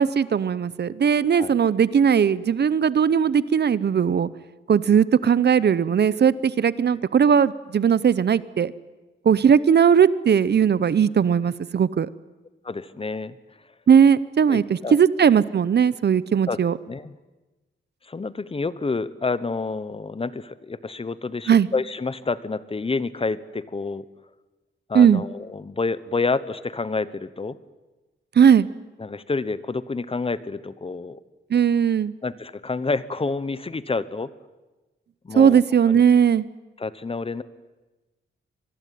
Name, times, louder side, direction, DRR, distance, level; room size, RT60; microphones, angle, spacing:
voice 1, 0.0-4.3 4.7-8.7 9.2-12.1 13.9-16.8 21.5-21.7 24.9-25.2 28.4-28.7 31.5-32.1 35.4-36.4, right 7 dB, 55° right, 18 dB, 0.8 m, -18 dB
voice 2, 12.6-13.4 14.5-15.0 16.5-17.1 18.0-24.1 24.9-27.6 29.0-31.2 32.2-34.3 35.2-35.6 35.9-36.0 36.8-37.4, left 3 dB, 30° left, 17 dB, 1.0 m, -28 dB
25.5 x 21.0 x 9.4 m, 1.1 s
wide cardioid pair, 125°, 20 cm